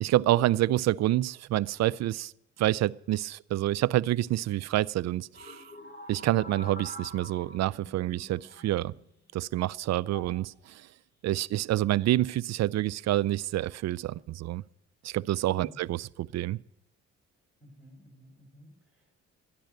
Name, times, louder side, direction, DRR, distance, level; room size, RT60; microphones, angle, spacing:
voice 1, 0.0-2.3 2.6-5.6 6.1-8.9 9.3-10.9 11.2-14.6 15.0-16.6, right 15 dB, 60° right, 0.4 m, -28 dB
sound 1, 5.3-9.2 10.0-10.4 11.3-11.7, equal, 30° left, 4.5 m, -46 dB
voice 2, 17.6-19.1, equal, 5° right, 4.9 m, -54 dB
13.5 x 10.0 x 6.5 m
cardioid pair, 90°, 30 cm